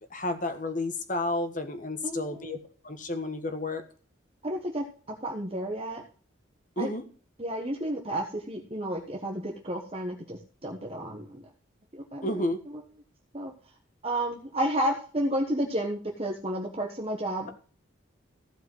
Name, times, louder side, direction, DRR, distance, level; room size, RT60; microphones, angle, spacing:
voice 1, 0.1-2.6 2.8-3.8 6.8-7.0 12.2-12.6, left 2 dB, 40° left, 8 dB, 1.5 m, -31 dB
voice 2, 2.0-2.5 4.4-6.0 6.8-6.9 7.4-11.4 11.9-12.3 13.3-13.5 14.0-17.5, right 1 dB, 30° right, 1 dB, 1.2 m, -31 dB
15.0 x 5.1 x 7.8 m, 0.41 s
head